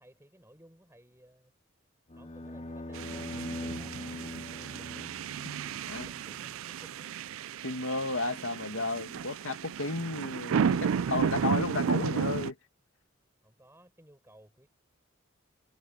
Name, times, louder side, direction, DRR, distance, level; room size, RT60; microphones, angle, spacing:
voice 1, 0.0-1.5 2.1-5.1 5.7-7.1 13.4-14.7, right 1 dB, 10° right, 6.2 m, -57 dB
sound 1, 2.1-6.4, left 1 dB, 35° left, 2.2 m, -42 dB
sound 2, 2.9-12.5, right 7 dB, 75° right, 0.4 m, -33 dB
voice 2, 7.6-12.6, left 2 dB, 80° left, 2.1 m, -33 dB
head